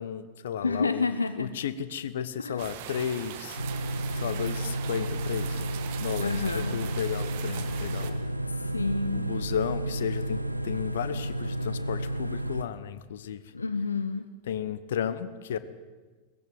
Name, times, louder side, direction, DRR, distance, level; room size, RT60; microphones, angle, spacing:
voice 1, 0.0-1.1 1.4-3.6 4.1-5.6 6.0-8.2 8.6-8.7 9.1-13.5 14.4-15.6, left 8 dB, 60° left, 14 dB, 1.0 m, -33 dB
voice 2, 0.6-1.5 2.4-2.7 6.2-6.8 8.5-9.3 13.5-14.3, left 4 dB, 80° left, 11 dB, 0.7 m, -29 dB
sound 1, 2.6-8.1, right 10 dB, 50° right, 1.6 m, -41 dB
sound 2, 2.8-12.7, right 4 dB, 70° right, 2.8 m, -53 dB
sound 3, 3.6-12.6, right 1 dB, 90° right, 0.8 m, -32 dB
18.5 x 15.0 x 9.3 m, 1.3 s
figure-of-eight pair, 90°, 0 cm